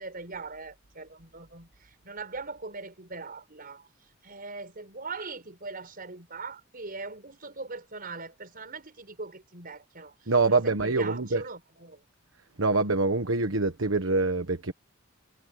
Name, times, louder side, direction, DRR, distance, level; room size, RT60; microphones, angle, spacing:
voice 1, 0.0-3.9 4.2-12.0, right 3 dB, 45° right, 5.1 m, -41 dB
voice 2, 10.3-11.4 12.6-14.7, right 3 dB, 70° right, 1.3 m, -25 dB
head